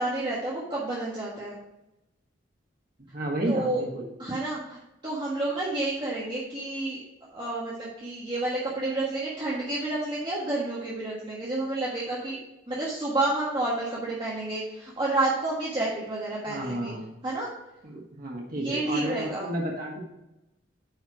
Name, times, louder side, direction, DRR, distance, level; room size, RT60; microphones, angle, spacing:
voice 1, 0.0-1.6 3.5-3.8 4.2-7.0 7.3-12.4 12.7-16.9 17.2-17.5 18.5-19.5, right 2 dB, 25° right, -7 dB, 1.5 m, -30 dB
voice 2, 3.1-4.1 16.5-17.1 17.8-20.0, right 1 dB, 45° right, -2 dB, 1.2 m, -32 dB
9.3 x 4.5 x 4.8 m, 0.95 s
head